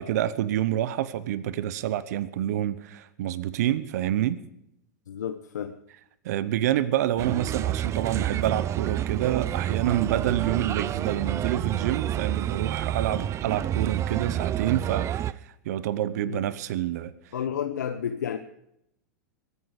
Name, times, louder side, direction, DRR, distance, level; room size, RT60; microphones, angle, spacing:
voice 1, 0.0-4.4 6.2-17.1, right 12 dB, 65° right, 0.9 m, -28 dB
voice 2, 5.1-5.8 16.2-16.4 17.3-18.4, left 8 dB, 80° left, 0.9 m, -31 dB
Bird, 7.2-15.3, right 11 dB, 30° right, 0.6 m, -29 dB
22.5 x 10.0 x 4.9 m
hypercardioid pair, 100°, 9 cm